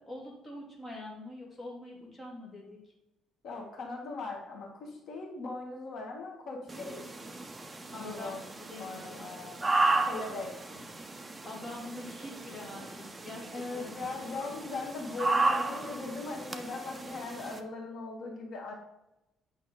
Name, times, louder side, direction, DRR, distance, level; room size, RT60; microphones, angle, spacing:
voice 1, 0.0-2.8 7.9-9.4 11.4-14.1, left 1 dB, 10° left, -4 dB, 2.5 m, -44 dB
voice 2, 3.4-7.1 7.9-8.4 8.8-9.6 10.1-10.8 13.5-18.7, left 3 dB, 60° left, 0 dB, 1.9 m, -39 dB
sound 1, 6.7-17.6, right 2 dB, 10° right, 0.7 m, -34 dB
8.8 x 5.8 x 3.8 m, 0.89 s
cardioid pair, 170°, 0 cm